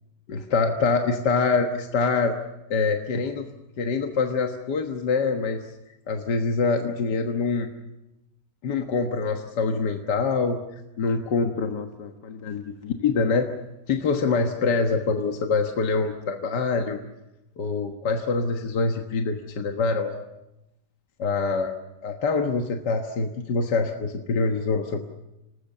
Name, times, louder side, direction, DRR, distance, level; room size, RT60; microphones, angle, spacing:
voice 1, 0.3-2.4 2.7-3.5 3.8-5.6 6.1-7.7 8.6-10.6 11.0-13.5 13.9-17.0 17.6-20.2 21.2-21.7 22.0-25.1, left 4 dB, 70° left, 4 dB, 2.0 m, -25 dB
28.0 x 19.5 x 7.3 m, 0.90 s
omnidirectional pair, 1.9 m